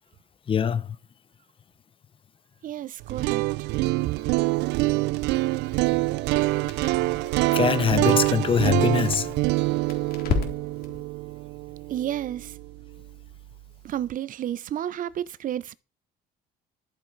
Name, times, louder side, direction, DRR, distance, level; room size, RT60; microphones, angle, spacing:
voice 1, 0.5-1.0 6.8-6.9 7.5-9.3, left 7 dB, 30° left, 0.7 m, -23 dB
voice 2, 2.6-3.7 11.9-12.6 13.8-15.7, right 11 dB, 55° right, 0.7 m, -31 dB
sound 1, 3.0-13.0, right 20 dB, 85° right, 0.4 m, -25 dB
Crackle, 5.7-11.0, left 5 dB, 65° left, 3.6 m, -35 dB
13.0 x 7.3 x 4.7 m
cardioid pair, 110°, 17 cm